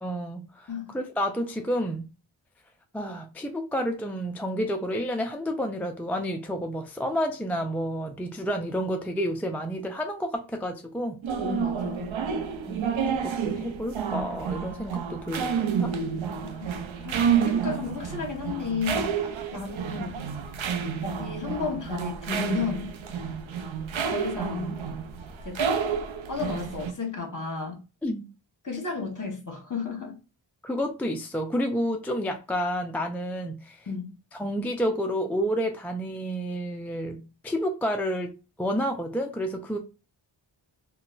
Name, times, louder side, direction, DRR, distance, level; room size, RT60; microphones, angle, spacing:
voice 1, 0.0-2.1 2.9-11.2 12.7-12.9 13.2-15.9 28.0-28.3 30.6-33.9 34.3-38.3 38.6-39.8, equal, 5° left, 0.3 m, -30 dB
sound 1, 11.2-26.9, right 6 dB, 70° right, 0.6 m, -30 dB
voice 2, 11.3-12.1 16.4-20.2 21.0-22.9 24.1-24.8 25.4-25.6 26.3-27.8 28.6-30.2 33.9-34.1, left 5 dB, 40° left, 1.1 m, -33 dB
3.9 x 2.2 x 2.4 m
wide cardioid pair, 70°, 49 cm